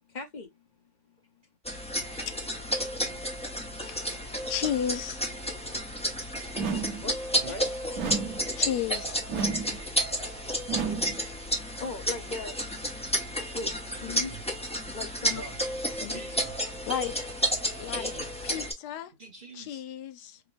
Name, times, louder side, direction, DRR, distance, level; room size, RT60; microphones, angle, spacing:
voice 1, 0.1-0.6 6.7-7.2 7.5-7.6 10.8-11.1 11.8-12.6 13.5-14.4 14.9-15.4 16.0-16.2, left 4 dB, 35° left, 0.8 m, -38 dB
sound 1, 1.6-18.7, equal, 5° left, 0.4 m, -31 dB
voice 2, 2.3-2.8 3.9-5.2 8.6-9.2 16.9-17.2 17.8-18.1 18.4-19.1 19.5-20.4, left 9 dB, 85° left, 1.2 m, -33 dB
sound 2, 6.6-7.1 8.0-8.5 9.3-9.8 10.7-11.2, right 6 dB, 65° right, 1.4 m, -31 dB
voice 3, 7.3-7.8 14.0-14.4 15.3-15.6 16.1-16.8 17.9-18.5 19.2-19.8, right 3 dB, 40° right, 0.9 m, -46 dB
5.2 x 2.1 x 3.2 m
omnidirectional pair, 1.7 m